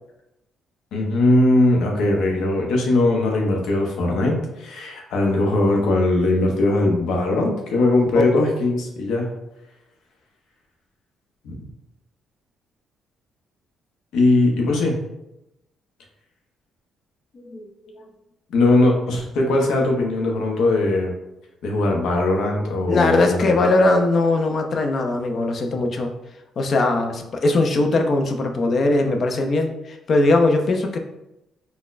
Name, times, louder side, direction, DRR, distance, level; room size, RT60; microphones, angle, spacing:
voice 1, 0.9-9.3 11.4-11.6 14.1-15.0 18.5-21.1 21.6-23.6, left 2 dB, 80° left, 0 dB, 0.7 m, -20 dB
voice 2, 22.9-26.1 26.6-31.0, left 2 dB, 45° left, 4 dB, 0.4 m, -20 dB
4.0 x 2.1 x 2.4 m, 0.89 s
cardioid pair, 120°, 0 cm